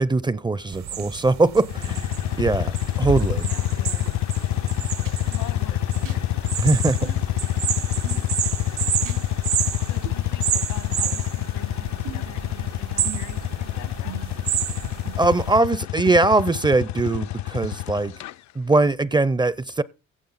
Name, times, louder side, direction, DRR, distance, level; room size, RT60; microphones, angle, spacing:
voice 1, 0.0-2.0 2.4-2.7 3.0-3.5 6.6-7.1 15.2-18.1 18.6-19.8, right 2 dB, 15° right, 0.4 m, -21 dB
sound 1, 0.7-15.6, right 10 dB, 65° right, 0.9 m, -31 dB
sound 2, 1.6-18.3, left 14 dB, 65° left, 0.5 m, -27 dB
voice 2, 3.4-4.1 5.3-6.5 9.9-14.4, left 9 dB, 85° left, 1.7 m, -43 dB
sound 3, 4.1-4.2 5.0-5.2 6.0-6.2 7.0-7.2 8.0-8.2 9.0-9.2 10.0-10.2 11.0-11.2 12.0-12.4 13.0-13.4 14.0-14.5 15.0-15.1 16.1-16.2 17.0-17.1, right 5 dB, 90° right, 3.4 m, -36 dB
16.0 x 7.1 x 4.0 m
cardioid pair, 90°, 30 cm